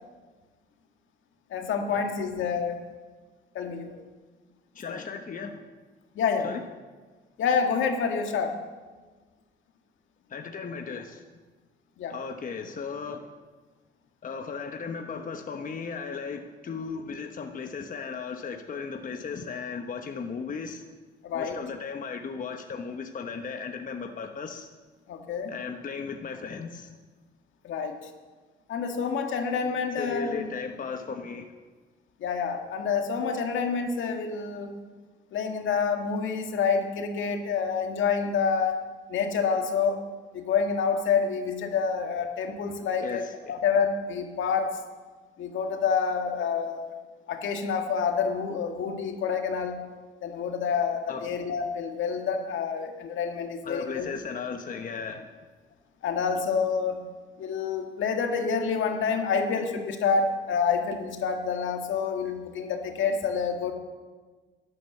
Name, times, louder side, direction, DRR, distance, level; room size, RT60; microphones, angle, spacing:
voice 1, 1.5-2.8 3.5-4.0 4.9-5.0 6.2-6.5 7.4-8.6 12.0-12.2 21.2-21.6 25.1-25.5 27.6-28.0 28.7-30.5 32.2-34.7 35.3-38.8 39.1-40.0 40.3-44.7 45.4-46.9 47.3-49.8 50.2-54.1 56.0-57.0 57.4-63.7, left 6 dB, 75° left, 4 dB, 1.9 m, -28 dB
voice 2, 4.7-5.6 6.4-6.6 10.3-11.2 12.1-13.3 14.2-20.8 21.3-24.7 25.5-26.9 30.0-31.5 43.0-43.6 51.1-51.2 53.6-55.2, left 5 dB, 40° left, 5 dB, 1.1 m, -36 dB
11.5 x 11.5 x 7.3 m, 1.4 s
cardioid pair, 90°, 20 cm